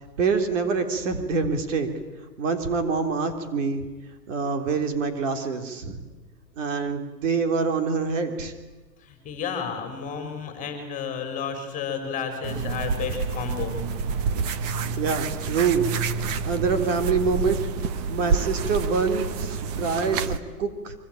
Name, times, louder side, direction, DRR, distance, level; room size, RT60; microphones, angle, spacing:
voice 1, 0.2-1.9 2.4-3.9 4.3-6.0 6.6-8.5 14.8-15.9 16.4-17.6 18.1-20.9, right 5 dB, 45° right, 6 dB, 3.6 m, -25 dB
voice 2, 9.0-13.7, left 6 dB, 15° left, 6 dB, 4.5 m, -32 dB
sound 1, 12.4-20.4, right 5 dB, 25° right, 1.1 m, -28 dB
26.0 x 24.5 x 9.1 m, 1.2 s
hypercardioid pair, 160°, 50 cm